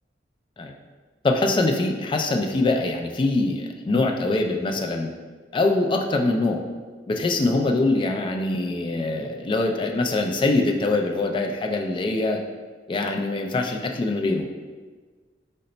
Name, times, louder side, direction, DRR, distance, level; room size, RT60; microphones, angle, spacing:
voice 1, 1.2-5.1 5.5-6.6 7.1-12.4 12.9-14.5, left 2 dB, 30° left, 3 dB, 0.3 m, -23 dB
3.9 x 2.1 x 3.8 m, 1.4 s
head